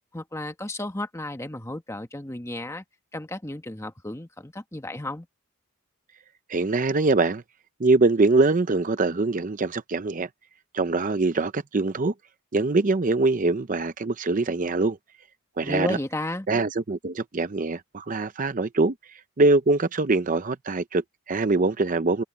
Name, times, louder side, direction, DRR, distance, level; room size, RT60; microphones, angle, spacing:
voice 1, 0.1-2.8 3.1-5.3 15.6-16.5, left 1 dB, 15° left, 1.5 m, -33 dB
voice 2, 6.5-7.4 7.8-10.3 10.7-12.1 12.5-15.0 15.6-16.0 16.5-22.2, right 3 dB, 35° right, 0.6 m, -23 dB
open air
head